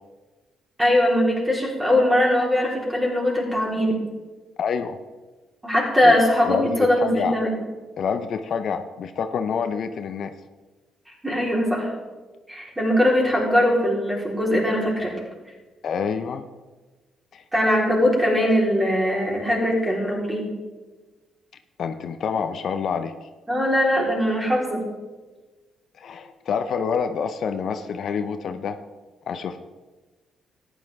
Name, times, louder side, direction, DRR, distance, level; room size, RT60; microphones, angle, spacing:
voice 1, 0.8-4.1 5.6-7.6 11.2-11.9 12.5-15.1 17.5-20.5 23.5-24.9, left 1 dB, 15° right, -3 dB, 3.9 m, -21 dB
voice 2, 4.6-5.0 6.0-6.2 6.5-7.3 8.0-10.3 15.8-16.5 17.3-17.4 21.8-23.1 26.0-28.8 29.3-29.6, left 6 dB, 60° left, 8 dB, 0.6 m, -27 dB
13.5 x 10.0 x 3.6 m, 1.2 s
cardioid pair, 90°, 0 cm